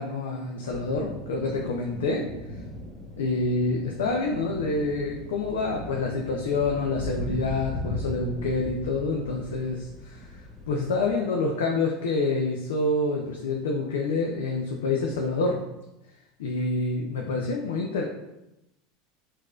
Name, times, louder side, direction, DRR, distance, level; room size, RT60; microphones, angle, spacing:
voice 1, 0.0-2.3 3.2-10.3 10.7-15.6 16.4-18.0, left 3 dB, 85° left, 0 dB, 0.4 m, -27 dB
sound 1, 0.7-11.1, left 1 dB, 30° right, 1.0 m, -38 dB
4.6 x 2.5 x 2.4 m, 0.91 s
hypercardioid pair, 100°, 0 cm